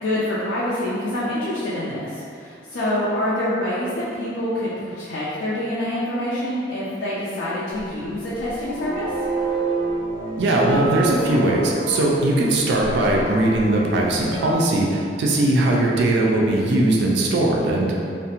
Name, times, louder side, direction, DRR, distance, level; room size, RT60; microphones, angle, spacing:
voice 1, 0.0-9.1, left 1 dB, 85° left, -9 dB, 0.4 m, -26 dB
sound 1, 7.8-14.5, right 2 dB, 30° left, 0.6 m, -29 dB
voice 2, 10.4-17.9, right 1 dB, 65° right, -2 dB, 0.3 m, -19 dB
2.5 x 2.0 x 2.7 m, 2.3 s
head